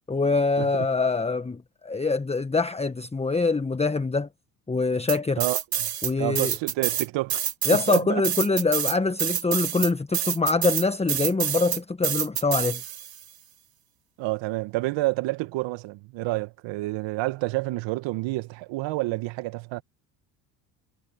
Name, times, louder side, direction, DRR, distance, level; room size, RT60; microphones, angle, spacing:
voice 1, 0.1-4.3 4.7-5.4 6.0-6.5 7.7-12.8, left 3 dB, 15° left, 1.4 m, -24 dB
sound 1, 5.1-6.1 6.4-13.2, right 10 dB, 45° right, 4.2 m, -27 dB
voice 2, 5.4-5.9 6.2-7.4 7.7-8.2 14.2-19.8, right 20 dB, 65° right, 1.7 m, -29 dB
hypercardioid pair, 75°, 48 cm